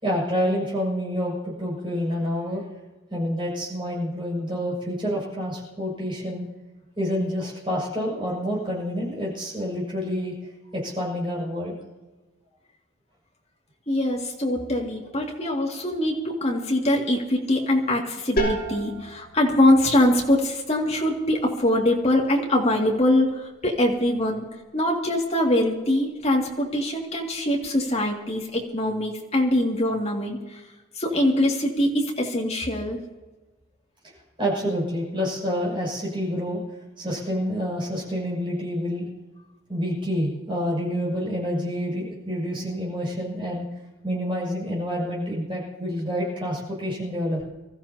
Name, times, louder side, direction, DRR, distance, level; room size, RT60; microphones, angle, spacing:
voice 1, 0.0-2.6 3.1-6.5 7.0-10.3 10.7-11.8 34.4-36.6 37.0-39.1 39.7-43.6 44.0-47.4, equal, 25° right, -5 dB, 6.5 m, -28 dB
voice 2, 13.9-24.5 24.7-30.6 30.9-33.0, left 1 dB, 30° left, -2 dB, 2.3 m, -23 dB
sound 1, 18.4-23.9, right 1 dB, 50° left, 4.3 m, -34 dB
26.0 x 14.0 x 2.9 m, 1.2 s
head